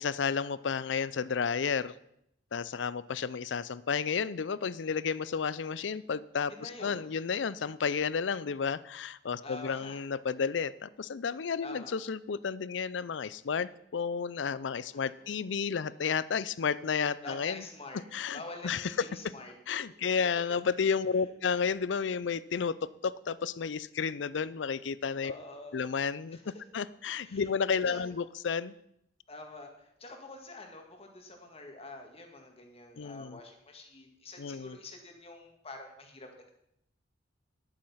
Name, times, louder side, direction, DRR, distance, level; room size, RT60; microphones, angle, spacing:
voice 1, 0.0-1.9 2.5-17.6 18.1-18.4 18.6-19.1 19.7-25.3 25.7-28.7 33.0-33.4 34.4-34.7, left 6 dB, 85° left, 18 dB, 0.5 m, -32 dB
voice 2, 6.5-7.1 9.4-10.0 11.3-12.0 14.9-15.5 17.2-18.0 18.3-19.6 25.2-25.8 26.3-26.6 27.2-27.5 27.9-28.1 29.3-36.5, left 2 dB, 35° left, 3 dB, 2.0 m, -47 dB
11.0 x 8.7 x 5.7 m, 0.75 s
head